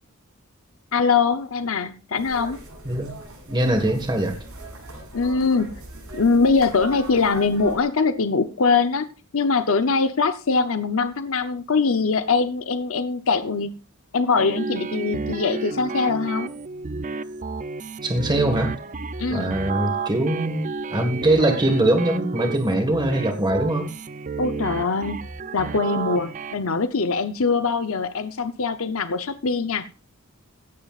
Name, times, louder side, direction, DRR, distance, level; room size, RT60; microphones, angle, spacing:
voice 1, 0.9-2.6 5.1-5.7 6.1-9.1 9.3-13.7 14.1-16.5 19.2-19.5 24.4-25.2 25.5-29.9, left 4 dB, 70° left, 10 dB, 0.7 m, -22 dB
sound 1, 2.1-7.8, right 1 dB, 85° right, 7.9 m, -39 dB
voice 2, 3.5-4.3 18.0-18.7 19.3-20.6 20.9-23.9, right 1 dB, 20° right, 5 dB, 1.6 m, -22 dB
sound 2, 14.4-26.5, right 4 dB, 35° right, 0.5 m, -31 dB
16.5 x 12.0 x 2.5 m, 0.35 s
head